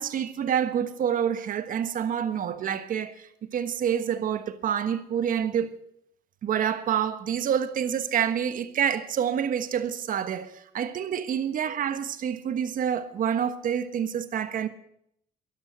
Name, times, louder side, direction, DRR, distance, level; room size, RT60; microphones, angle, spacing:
voice 1, 0.0-5.8 6.4-14.7, right 8 dB, 55° right, 1.3 m, -27 dB
12.5 x 11.5 x 7.6 m
cardioid pair, 110°, 17 cm